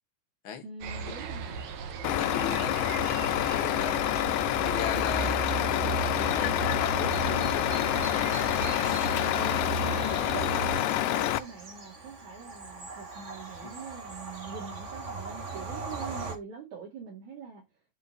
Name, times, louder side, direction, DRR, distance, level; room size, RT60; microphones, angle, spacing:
voice 1, 0.6-1.6 2.3-2.8 3.6-4.2 4.9-5.2 7.8-8.6 9.3-17.6, right 5 dB, 60° right, 3.8 m, -44 dB
sound 1, 0.8-10.8, right 6 dB, 85° right, 3.0 m, -35 dB
voice 2, 1.9-2.7 3.1-4.0 4.5-5.4 5.7-8.9 9.5-9.7 13.6-13.7, left 8 dB, 60° left, 1.4 m, -39 dB
Truck, 2.0-11.4, left 14 dB, 85° left, 2.3 m, -27 dB
Bird vocalization bird call bird song / Train, 8.8-16.3, right 3 dB, 35° right, 1.2 m, -41 dB
10.5 x 4.7 x 4.0 m
omnidirectional pair, 3.9 m